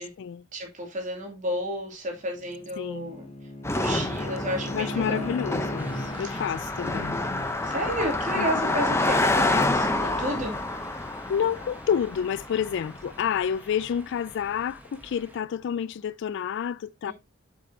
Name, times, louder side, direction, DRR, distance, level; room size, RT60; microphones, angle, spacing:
voice 1, 0.5-3.3 3.7-5.3 6.1-6.4 7.6-10.6 17.0-17.1, equal, 40° right, 2.7 m, -32 dB
Bowed string instrument, 2.2-6.2, left 1 dB, 30° left, 1.4 m, -37 dB
voice 2, 2.8-3.2 4.7-7.2 8.4-8.8 11.3-17.1, left 8 dB, 60° left, 0.3 m, -29 dB
Car passing by, 3.6-13.2, left 2 dB, 15° left, 0.8 m, -28 dB
sound 1, 5.8-15.4, right 1 dB, 10° right, 1.3 m, -46 dB
7.7 x 6.7 x 2.8 m
head